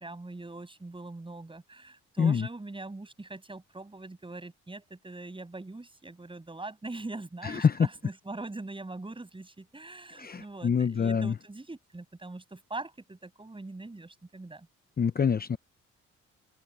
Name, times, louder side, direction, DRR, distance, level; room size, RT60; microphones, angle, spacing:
voice 1, 0.0-14.7, right 2 dB, 15° right, 7.9 m, -42 dB
voice 2, 7.4-7.9 10.2-11.3 15.0-15.6, left 6 dB, 30° left, 0.8 m, -25 dB
open air
cardioid pair, 90°, 30 cm